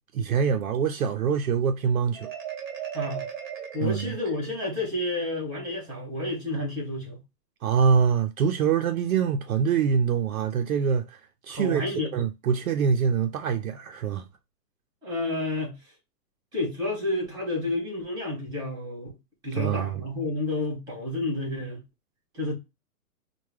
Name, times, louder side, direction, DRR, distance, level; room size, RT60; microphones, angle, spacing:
voice 1, 0.1-2.3 3.8-4.1 7.6-11.8 12.1-14.2 19.5-20.0, right 6 dB, 65° right, 0.5 m, -24 dB
Marimba xylophone, 2.1-4.9, right 9 dB, 30° right, 0.9 m, -37 dB
voice 2, 2.9-3.3 3.7-7.2 11.5-12.1 15.0-15.8 16.5-19.1 19.4-21.8 22.3-22.5, left 2 dB, 10° right, 2.0 m, -30 dB
4.5 x 2.2 x 3.1 m
hypercardioid pair, 160°, 48 cm